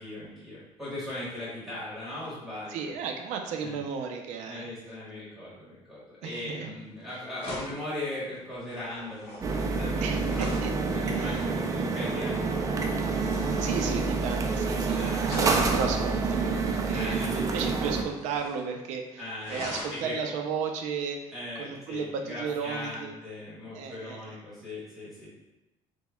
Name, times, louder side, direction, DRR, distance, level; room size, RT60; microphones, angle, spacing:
voice 1, 0.0-2.9 3.6-3.8 4.5-10.2 10.9-12.8 14.9-15.4 16.9-17.6 19.2-19.6 19.9-20.3 21.3-25.3, left 1 dB, ahead, -9 dB, 1.3 m, -39 dB
voice 2, 2.7-4.7 6.2-6.8 10.0-10.8 11.1-11.4 13.6-23.1 23.7-24.4, right 6 dB, 90° right, 4 dB, 0.5 m, -34 dB
sound 1, 6.8-7.0 7.4-10.8 12.8-14.9 15.2-16.8 17.5-18.7 18.9-19.0 19.4-20.1 21.9-22.0, left 1 dB, 55° left, 0.9 m, -43 dB
sound 2, 9.4-18.0, right 4 dB, 30° right, 0.4 m, -28 dB
6.0 x 2.2 x 2.2 m, 1.0 s
cardioid pair, 140°, 12 cm